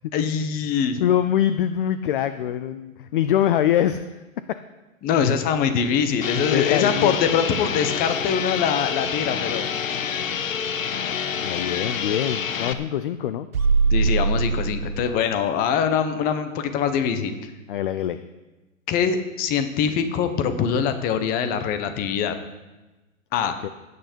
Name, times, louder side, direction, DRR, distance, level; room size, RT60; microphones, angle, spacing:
voice 1, 0.1-1.0 5.0-9.7 13.9-17.5 18.9-22.4 23.3-23.6, left 7 dB, 20° left, 9 dB, 1.0 m, -23 dB
voice 2, 1.0-4.0 6.5-7.2 11.4-13.5 17.7-18.2, left 10 dB, 40° left, 12 dB, 0.5 m, -23 dB
sound 1, 6.2-12.7, left 7 dB, 70° left, 1.2 m, -27 dB
sound 2, 13.5-15.4, right 4 dB, 85° right, 1.2 m, -22 dB
15.5 x 9.4 x 4.5 m, 1.1 s
hypercardioid pair, 135°, 41 cm